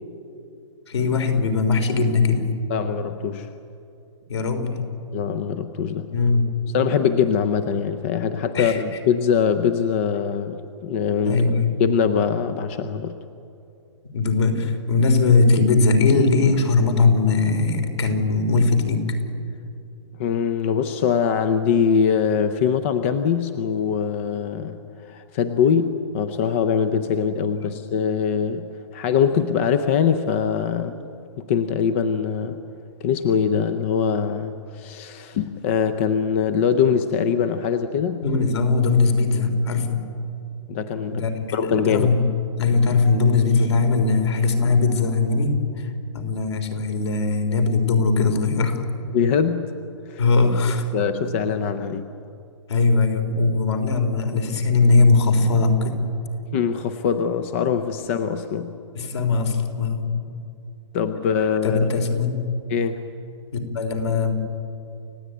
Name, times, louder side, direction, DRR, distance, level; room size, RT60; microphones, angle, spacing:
voice 1, 0.9-2.5 4.3-4.8 6.1-6.5 8.5-8.8 11.2-11.7 14.1-19.2 27.6-27.7 38.2-40.0 41.1-42.2 42.6-48.8 50.2-50.9 52.7-56.0 58.9-60.1 61.6-62.3 63.5-64.3, left 3 dB, 60° left, 6 dB, 3.8 m, -20 dB
voice 2, 2.7-3.5 5.1-6.1 6.7-11.4 11.8-13.2 20.2-30.9 31.5-32.6 33.0-38.2 40.7-41.2 41.5-42.1 49.1-49.7 50.1-50.2 50.9-52.1 56.5-58.7 60.9-61.9 62.7-63.1, left 7 dB, 25° left, 10 dB, 0.6 m, -22 dB
29.5 x 16.0 x 9.3 m, 2.7 s
hypercardioid pair, 175°, 16 cm